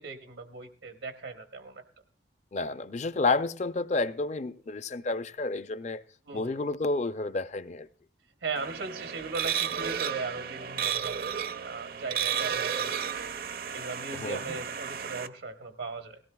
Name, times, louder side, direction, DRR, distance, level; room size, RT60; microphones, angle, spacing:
voice 1, 0.0-1.8 6.3-6.6 8.4-13.3 13.7-16.2, right 4 dB, 90° right, 1.1 m, -38 dB
voice 2, 2.5-6.0 6.3-7.9 14.2-14.4, left 3 dB, 40° left, 0.5 m, -30 dB
sound 1, 8.6-15.3, right 8 dB, 55° right, 0.6 m, -33 dB
18.0 x 17.0 x 2.3 m
head